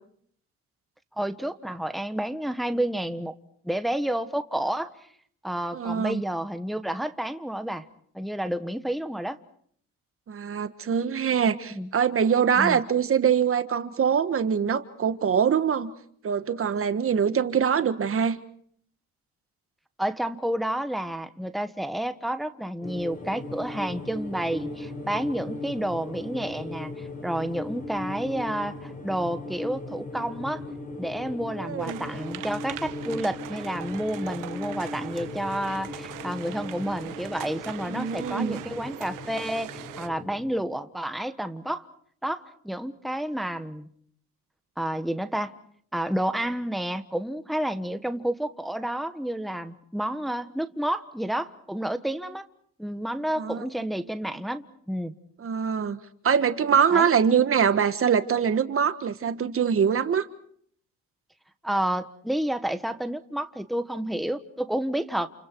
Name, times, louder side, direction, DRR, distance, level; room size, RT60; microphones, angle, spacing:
voice 1, 1.2-3.3 3.6-4.9 5.4-7.8 8.1-9.4 11.5-11.9 12.6-12.8 20.0-30.6 31.0-39.7 40.0-41.9 42.2-43.9 44.8-45.5 45.9-52.4 52.8-55.1 56.9-57.1 61.6-65.3, right 1 dB, ahead, 9 dB, 1.3 m, -30 dB
voice 2, 5.7-6.2 10.3-15.9 16.2-18.4 31.6-32.1 37.9-38.6 53.4-53.6 55.4-56.0 56.2-60.3, right 7 dB, 45° right, 12 dB, 1.5 m, -23 dB
sound 1, 22.8-40.6, left 2 dB, 25° left, 4.9 m, -38 dB
sound 2, 31.8-40.1, right 14 dB, 80° right, 1.3 m, -41 dB
29.5 x 28.5 x 4.6 m, 0.63 s
cardioid pair, 90°, 31 cm